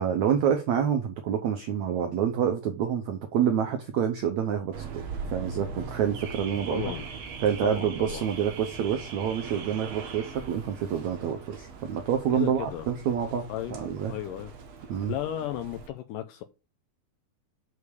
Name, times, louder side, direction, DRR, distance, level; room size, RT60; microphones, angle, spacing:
voice 1, 0.0-6.8 7.4-14.1 14.9-15.1, right 8 dB, 80° right, 1.6 m, -27 dB
Car / Alarm, 4.7-15.9, right 5 dB, 55° right, 2.0 m, -40 dB
voice 2, 6.7-7.0 7.6-8.2 12.3-12.9 13.5-13.8 14.1-14.5 15.1-16.4, left 12 dB, 80° left, 2.0 m, -34 dB
6.7 x 4.8 x 6.9 m
omnidirectional pair, 4.4 m